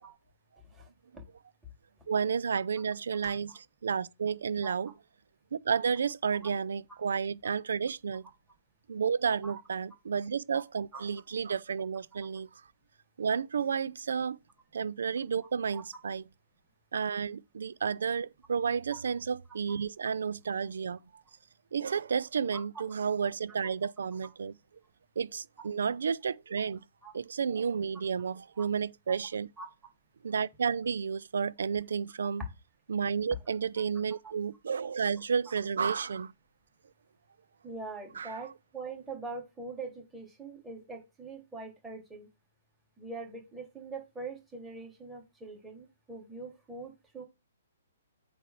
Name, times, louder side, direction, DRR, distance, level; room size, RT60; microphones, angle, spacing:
voice 1, 0.7-1.2 3.2-3.6 4.6-4.7 6.4-6.5 6.9-7.0 9.4-9.6 10.9-11.0 15.7-15.8 19.7-19.8 22.5-22.6 27.0-27.1 28.5-28.6 29.1-29.2 29.6-29.7 34.2-34.3 35.8-35.9 37.6-42.3 43.0-47.2, right 3 dB, 10° right, 3.3 m, -43 dB
voice 2, 2.1-3.5 3.8-4.9 5.5-8.3 8.9-12.5 13.2-14.4 14.7-16.2 16.9-21.0 21.7-24.6 25.2-26.8 27.1-29.5 30.2-32.4 32.9-36.3 38.2-38.4, right 6 dB, 60° right, 0.6 m, -31 dB
8.2 x 3.4 x 6.0 m
figure-of-eight pair, 120°, 0 cm